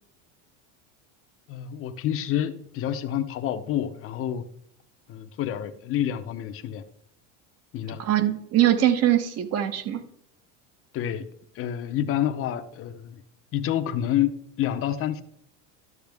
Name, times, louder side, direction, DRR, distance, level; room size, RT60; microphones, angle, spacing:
voice 1, 1.5-4.4 5.1-6.8 7.7-8.0 10.9-11.2 11.5-13.2 13.5-14.3 14.6-15.2, left 11 dB, 35° left, 8 dB, 0.8 m, -28 dB
voice 2, 8.0-10.0, right 12 dB, 40° right, 10 dB, 1.1 m, -22 dB
12.0 x 7.0 x 3.5 m, 0.70 s
supercardioid pair, 140°, 39 cm